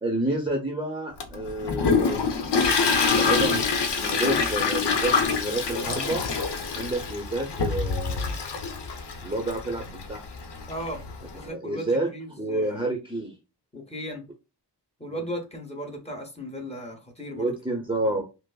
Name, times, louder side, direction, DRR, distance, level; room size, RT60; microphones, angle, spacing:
voice 1, 0.0-2.2 3.1-5.1 5.4-6.2 6.7-8.4 9.2-10.2 11.4-12.1 12.4-13.3 15.1-15.3 17.4-18.2, right 1 dB, 10° right, 0.7 m, -29 dB
Toilet flush, 1.2-11.4, left 5 dB, 75° left, 0.8 m, -26 dB
voice 2, 10.7-11.0 11.3-12.9 13.7-14.3 15.0-17.6 18.0-18.1, equal, 15° left, 1.1 m, -36 dB
5.0 x 2.0 x 2.3 m
wide cardioid pair, 95°, 42 cm